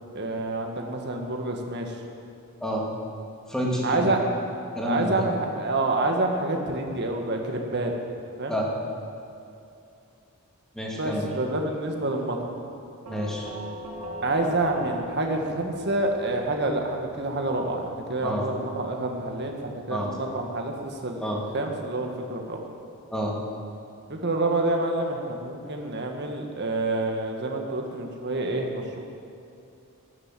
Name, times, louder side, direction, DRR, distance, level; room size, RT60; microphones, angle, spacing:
voice 1, 0.1-2.0 3.8-4.2 4.8-7.9 8.4-8.5 10.9-12.5 14.2-22.6 24.1-29.0, right 2 dB, 50° right, 2 dB, 1.7 m, -28 dB
voice 2, 3.5-4.1 4.7-5.3 8.5-8.6 10.7-11.3 13.1-13.5 18.2-18.4 19.9-20.1 21.2-21.4 23.1-23.4, equal, 5° left, -3 dB, 2.2 m, -28 dB
Doorbell, 13.1-21.9, equal, 90° right, 1.9 m, -43 dB
13.0 x 11.0 x 7.5 m, 2.6 s
head